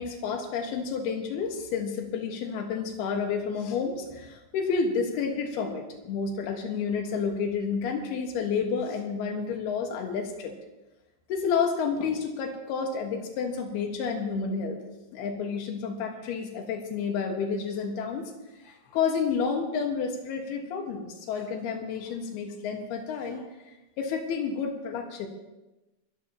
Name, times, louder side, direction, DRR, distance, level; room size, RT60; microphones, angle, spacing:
voice 1, 0.0-10.5 11.3-14.8 15.1-18.3 18.6-25.3, left 5 dB, 90° left, 3 dB, 3.5 m, -30 dB
26.0 x 13.5 x 2.9 m, 1.0 s
omnidirectional pair, 4.4 m